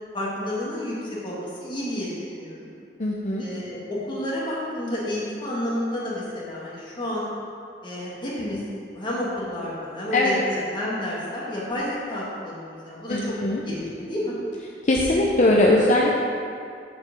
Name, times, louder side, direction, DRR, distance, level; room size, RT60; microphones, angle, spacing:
voice 1, 0.1-2.7 3.4-7.3 7.8-8.6 8.9-13.3 13.7-14.4, left 1 dB, 25° left, -7 dB, 2.1 m, -30 dB
voice 2, 3.0-3.4 10.1-10.4 13.1-13.6 14.8-16.2, left 1 dB, 40° left, -2 dB, 0.7 m, -20 dB
7.1 x 5.2 x 7.0 m, 2.4 s
head